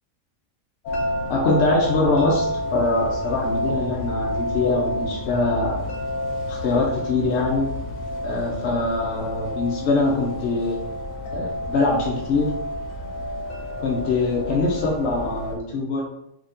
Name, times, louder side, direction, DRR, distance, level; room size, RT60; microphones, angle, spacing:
sound 1, 0.9-15.6, left 1 dB, 85° left, 1.1 m, -28 dB
voice 1, 1.3-5.8 6.5-7.7 8.2-10.8 11.3-12.5 13.8-16.0, left 3 dB, 65° left, -1 dB, 0.8 m, -23 dB
2.8 x 2.6 x 3.4 m, 0.80 s
omnidirectional pair, 1.3 m